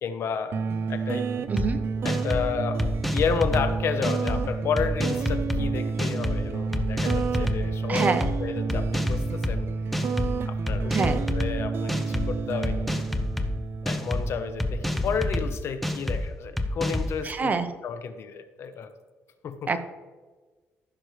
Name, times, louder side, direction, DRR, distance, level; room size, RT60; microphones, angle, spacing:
voice 1, 0.0-1.3 2.0-2.8 3.1-8.1 8.4-9.7 10.4-11.0 11.3-13.0 13.8-17.5 17.8-18.9 19.4-19.7, left 6 dB, 65° left, 9 dB, 0.9 m, -31 dB
sound 1, 0.5-15.6, right 5 dB, 55° right, 0.5 m, -30 dB
voice 2, 1.5-1.8 7.9-8.2 10.9-11.2 17.2-17.7 19.7-19.8, right 4 dB, 35° right, 8 dB, 0.9 m, -26 dB
sound 2, 1.6-1.7 2.1-2.4 2.8-3.6 4.0-4.4 4.8-5.6 6.0-6.4 6.7-7.6 8.0-8.3 8.7-9.5 9.9-10.3 10.7-11.5 11.9-12.3 12.6-13.5 13.9-14.2 14.6-15.4 15.8-16.2 16.6-17.1, left 1 dB, ahead, 0.8 m, -27 dB
14.5 x 6.5 x 3.2 m, 1.3 s
cardioid pair, 110°, 5 cm